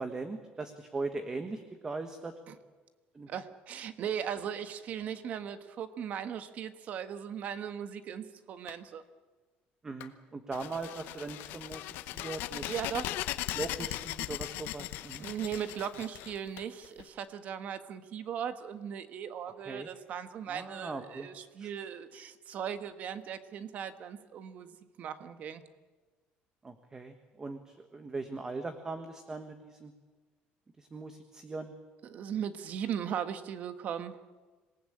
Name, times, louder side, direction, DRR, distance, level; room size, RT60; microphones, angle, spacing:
voice 1, 0.0-2.3 3.1-3.3 9.8-12.6 13.5-15.3 19.7-19.9 20.5-21.3 21.6-21.7 26.6-29.9 30.8-31.7, right 3 dB, 15° right, 8 dB, 1.3 m, -40 dB
voice 2, 3.3-9.0 12.7-13.2 15.2-24.7 25.0-25.6 32.0-34.2, right 8 dB, 45° right, 10 dB, 1.5 m, -38 dB
Clapping, 8.7-8.9 10.0-10.2 11.4-11.5 12.7-12.9 14.0-14.4 15.3-15.8 16.6-16.7, left 14 dB, 85° left, 1.6 m, -52 dB
sound 1, 10.5-17.0, left 15 dB, 70° left, 1.0 m, -38 dB
26.5 x 19.0 x 8.7 m, 1.3 s
cardioid pair, 165°, 4 cm